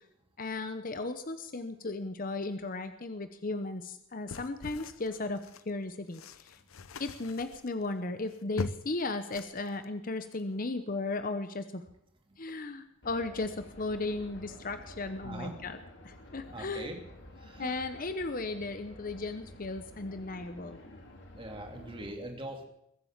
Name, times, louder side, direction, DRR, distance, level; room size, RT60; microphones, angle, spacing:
voice 1, 0.4-5.4 5.7-6.2 7.0-11.8 12.4-15.8 16.0-16.9 17.6-20.8, left 3 dB, 40° left, 9 dB, 0.9 m, -35 dB
sound 1, 4.3-5.7 6.1-9.0 9.3-9.8 10.2-10.4, left 3 dB, 80° left, 0.8 m, -41 dB
sound 2, 13.0-22.1, left 1 dB, 55° left, 2.5 m, -51 dB
voice 2, 15.2-15.5 16.5-17.0 17.4-17.8 21.4-22.6, right 1 dB, 25° right, 2 dB, 2.5 m, -41 dB
22.0 x 7.8 x 7.4 m, 0.78 s
head